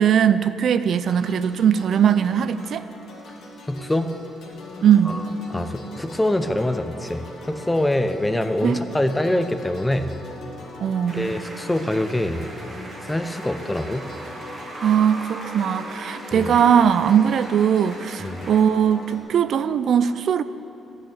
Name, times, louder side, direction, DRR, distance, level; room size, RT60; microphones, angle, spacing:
voice 1, 0.0-2.9 4.8-5.2 8.6-8.8 10.8-11.3 14.8-20.4, right 8 dB, 65° right, 13 dB, 0.4 m, -19 dB
sound 1, 0.9-19.2, left 2 dB, 75° left, 1.9 m, -41 dB
voice 2, 3.7-4.2 5.1-5.2 5.5-10.1 11.1-12.5 13.0-14.0 16.3-16.5 18.2-18.5, left 1 dB, 10° left, 9 dB, 0.7 m, -24 dB
sound 2, 11.1-18.6, right 2 dB, 35° right, 1.6 m, -39 dB
11.5 x 6.3 x 8.4 m, 2.8 s
cardioid pair, 90°, 0 cm